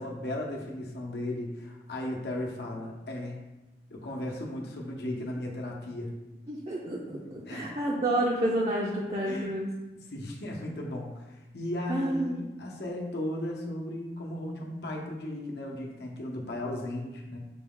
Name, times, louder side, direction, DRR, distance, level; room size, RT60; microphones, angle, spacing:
voice 1, 0.0-3.4 3.9-6.1 7.5-7.6 9.3-9.6 10.1-17.4, left 1 dB, 70° left, -1 dB, 0.8 m, -36 dB
voice 2, 6.5-9.8 11.9-12.5, right 1 dB, 35° right, -4 dB, 0.4 m, -29 dB
5.8 x 2.3 x 3.7 m, 1.1 s
head